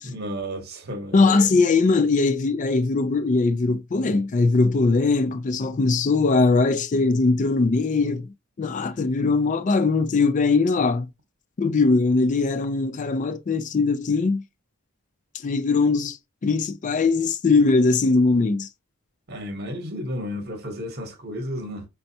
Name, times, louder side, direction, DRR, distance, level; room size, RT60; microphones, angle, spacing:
voice 1, 0.0-1.6 19.3-21.9, equal, 50° right, 1.0 m, -32 dB
voice 2, 1.1-8.3 8.6-11.1 11.6-14.4 15.4-16.2 16.4-18.7, left 3 dB, 35° left, 0.4 m, -20 dB
5.1 x 2.3 x 2.7 m
head